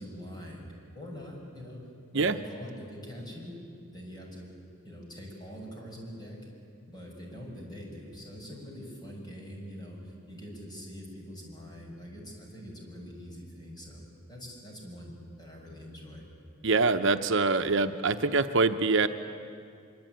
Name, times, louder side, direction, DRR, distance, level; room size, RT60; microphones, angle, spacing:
voice 1, 0.0-1.8 2.1-3.5 3.9-4.5 4.8-6.4 6.9-14.0 14.3-16.2, equal, 20° left, -1 dB, 6.5 m, -44 dB
voice 2, 16.6-19.1, right 3 dB, 65° right, 8 dB, 0.9 m, -24 dB
24.5 x 24.5 x 9.3 m, 2.3 s
head